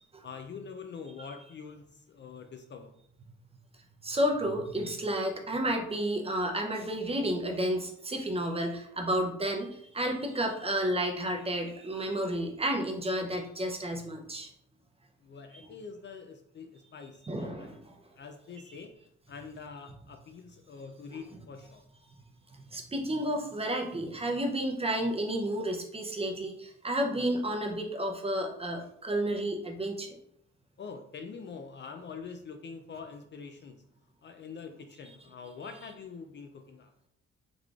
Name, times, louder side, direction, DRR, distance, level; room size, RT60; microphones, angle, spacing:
voice 1, 0.2-2.9 15.2-17.8 18.2-18.9 19.3-21.8 30.8-33.8 34.2-36.9, left 5 dB, 40° left, 5 dB, 0.4 m, -45 dB
voice 2, 4.0-14.5 17.2-17.8 22.7-30.2, right 1 dB, 20° right, 2 dB, 0.6 m, -31 dB
3.8 x 3.1 x 2.4 m, 0.70 s
cardioid pair, 90°, 30 cm